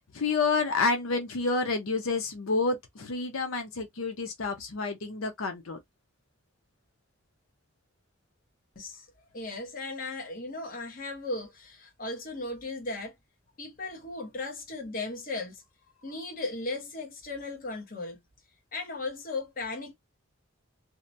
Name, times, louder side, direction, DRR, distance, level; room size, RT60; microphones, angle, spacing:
voice 1, 0.1-5.8, left 4 dB, 90° left, 0.7 m, -29 dB
voice 2, 9.3-13.1 13.6-15.7 16.0-18.2 18.7-19.9, left 2 dB, 40° left, 0.9 m, -36 dB
2.8 x 2.1 x 2.6 m
head